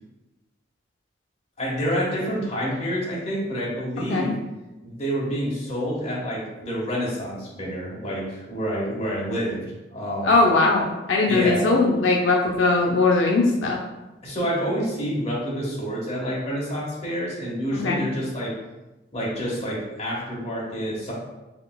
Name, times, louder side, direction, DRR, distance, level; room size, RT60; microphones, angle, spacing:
voice 1, 1.6-4.4 4.8-10.3 11.3-11.7 14.2-18.6 19.1-21.1, equal, 35° left, -5 dB, 1.3 m, -28 dB
voice 2, 10.2-13.8 17.7-18.0, left 3 dB, 85° left, -1 dB, 0.5 m, -20 dB
5.0 x 3.3 x 2.2 m, 1.1 s
head